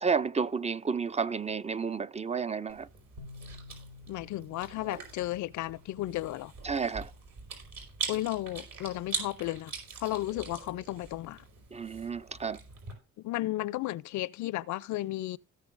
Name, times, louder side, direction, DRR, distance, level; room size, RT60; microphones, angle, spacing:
voice 1, 0.0-2.9 6.6-7.1 11.7-12.6, right 5 dB, 20° right, 0.4 m, -31 dB
Chewing mastication, 2.7-12.9, right 5 dB, 65° right, 4.8 m, -42 dB
sound 1, 3.2-6.4, left 3 dB, 85° right, 3.3 m, -51 dB
voice 2, 4.1-6.5 8.1-9.7 10.0-11.4 13.2-15.4, left 16 dB, 70° left, 0.5 m, -34 dB
17.0 x 6.8 x 2.5 m
cardioid pair, 90°, 30 cm